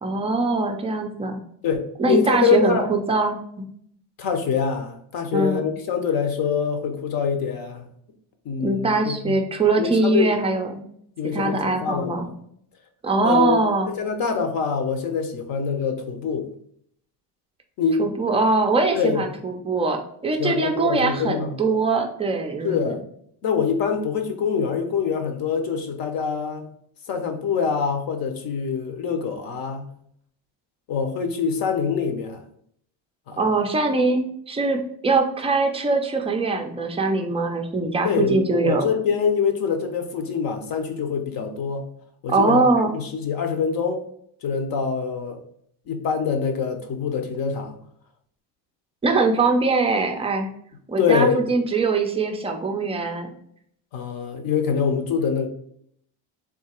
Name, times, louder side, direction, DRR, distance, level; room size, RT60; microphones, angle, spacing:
voice 1, 0.0-1.4 2.0-3.6 5.3-5.6 8.6-10.8 11.3-12.3 13.0-13.9 18.0-22.9 33.4-38.9 42.3-42.9 49.0-50.5 50.9-53.3, right 3 dB, 15° right, 3 dB, 0.4 m, -22 dB
voice 2, 1.6-2.8 4.2-7.9 8.4-9.4 9.8-10.3 11.2-12.3 13.2-16.5 17.8-18.1 18.9-19.2 20.4-21.6 22.6-23.0 23.4-26.7 27.1-29.9 30.9-32.4 33.3-33.4 38.0-41.9 42.2-44.0 44.4-45.4 45.9-47.7 51.0-51.4 53.9-55.5, left 6 dB, 50° left, 6 dB, 0.8 m, -24 dB
3.7 x 2.8 x 4.3 m, 0.68 s
cardioid pair, 140°, 45 cm